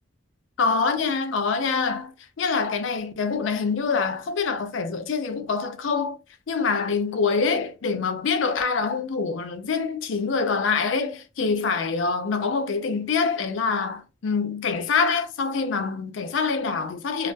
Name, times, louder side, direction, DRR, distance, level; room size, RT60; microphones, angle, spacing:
voice 1, 0.6-6.2 6.5-17.3, left 5 dB, 75° left, 0.4 m, -25 dB
2.2 x 2.2 x 2.6 m
head